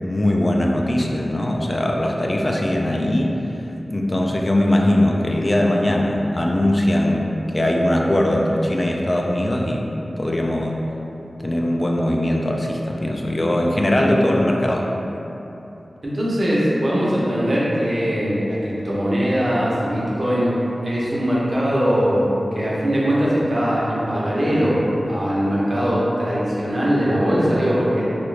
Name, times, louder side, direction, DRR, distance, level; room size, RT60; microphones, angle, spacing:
voice 1, 0.0-3.4 3.9-9.9 10.2-10.9 11.4-14.9, left 1 dB, 35° left, -1 dB, 0.3 m, -20 dB
voice 2, 16.0-28.0, equal, 55° right, -7 dB, 0.7 m, -21 dB
3.0 x 2.4 x 3.1 m, 3.0 s
cardioid pair, 50°, 0 cm